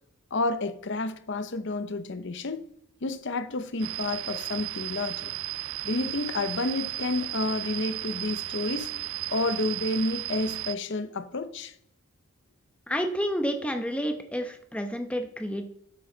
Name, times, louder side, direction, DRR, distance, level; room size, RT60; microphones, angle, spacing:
voice 1, 0.3-2.7 3.0-5.3 5.8-8.9 9.3-11.7, left 2 dB, 55° left, 0.7 m, -30 dB
sound 1, 3.8-10.7, right 16 dB, 65° right, 0.3 m, -35 dB
voice 2, 12.9-15.6, equal, 5° left, 0.9 m, -30 dB
11.5 x 8.6 x 3.9 m
head